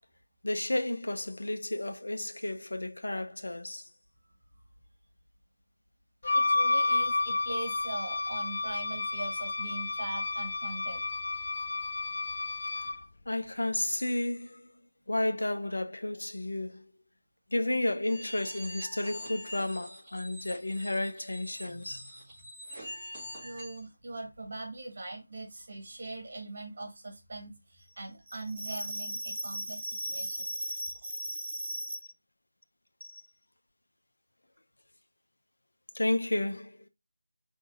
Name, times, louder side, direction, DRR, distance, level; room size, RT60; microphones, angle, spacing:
voice 1, 0.4-3.9 13.3-14.7 15.1-16.8 17.5-22.1 33.0-33.2 35.9-36.8, left 1 dB, 75° left, 0.8 m, -32 dB
Wind instrument woodwind instrument, 6.2-13.0, left 3 dB, 50° left, 0.3 m, -31 dB
voice 2, 6.3-11.0 12.8-13.0 21.6-22.1 23.2-31.9, right 1 dB, 45° right, 1.8 m, -39 dB
sound 1, 18.0-23.8, equal, 5° right, 2.0 m, -45 dB
4.8 x 3.7 x 2.5 m
figure-of-eight pair, 165°, 0 cm